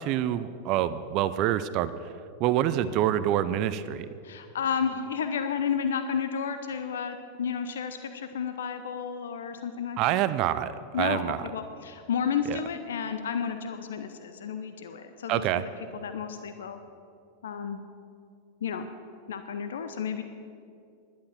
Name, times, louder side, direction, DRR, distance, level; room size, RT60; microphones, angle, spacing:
voice 1, 0.0-1.9 2.4-4.1 10.0-10.7 11.0-11.4 12.5-12.6 15.3-15.6, right 12 dB, 45° right, 14 dB, 0.5 m, -26 dB
voice 2, 4.2-10.2 10.9-16.8 17.4-17.8 18.6-18.9 19.3-20.2, left 7 dB, 70° left, 9 dB, 0.7 m, -32 dB
11.5 x 10.5 x 7.3 m, 2.5 s
figure-of-eight pair, 90°, 0 cm